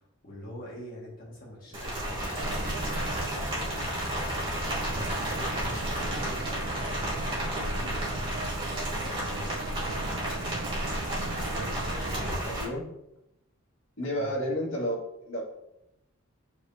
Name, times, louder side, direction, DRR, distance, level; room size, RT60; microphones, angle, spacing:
voice 1, 0.0-4.3 4.6-10.3 11.0-11.4 14.1-14.4, left 1 dB, 40° left, -7 dB, 1.8 m, -46 dB
Rain, 1.7-12.6, right 1 dB, 25° right, 2.2 m, -33 dB
sound 1, 2.2-6.7, equal, 15° left, 1.1 m, -42 dB
sound 2, 2.4-12.4, right 1 dB, 50° right, 0.5 m, -35 dB
voice 2, 11.5-12.0 12.5-12.8 14.0-15.0 15.2-15.4, equal, 70° left, -3 dB, 2.1 m, -32 dB
7.9 x 5.1 x 2.8 m, 0.84 s
head